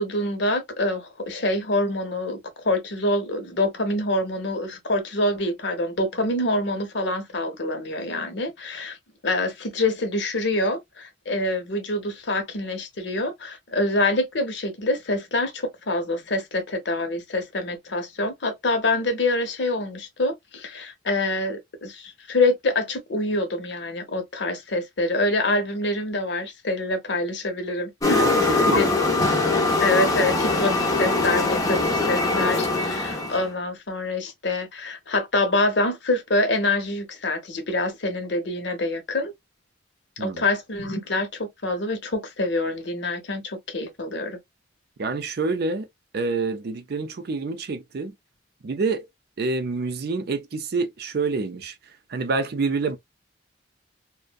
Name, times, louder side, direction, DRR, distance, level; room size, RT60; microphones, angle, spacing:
voice 1, 0.0-2.4 2.6-9.0 9.2-28.9 29.8-39.3 40.2-44.4, left 2 dB, 65° left, 0.8 m, -26 dB
sound 1, 28.0-33.5, left 2 dB, 20° left, 0.5 m, -22 dB
voice 2, 28.1-29.0 40.2-40.4 45.0-45.9 46.1-48.1 48.6-49.1 49.4-51.8 52.1-53.0, right 3 dB, 55° right, 0.5 m, -27 dB
2.5 x 2.1 x 2.2 m
head